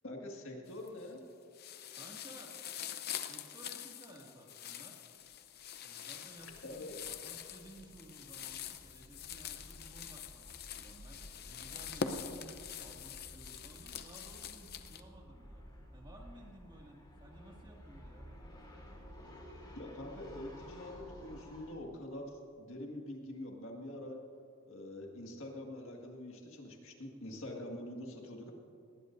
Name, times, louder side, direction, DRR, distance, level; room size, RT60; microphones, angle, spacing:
voice 1, 0.0-1.2 6.6-6.9 19.8-24.2 24.7-28.5, left 1 dB, 65° left, 0 dB, 1.9 m, -45 dB
sound 1, 0.7-1.2 1.5-15.0, left 7 dB, 45° left, 0.7 m, -45 dB
voice 2, 2.0-2.5 3.2-5.0 5.8-11.2 11.5-12.5 12.8-15.6 15.9-18.3, right 1 dB, 20° right, -1 dB, 2.1 m, -56 dB
sound 2, 5.2-5.3 5.6-5.7 6.0-21.7, equal, 20° left, 3.1 m, -54 dB
20.0 x 18.0 x 2.6 m, 2.5 s
head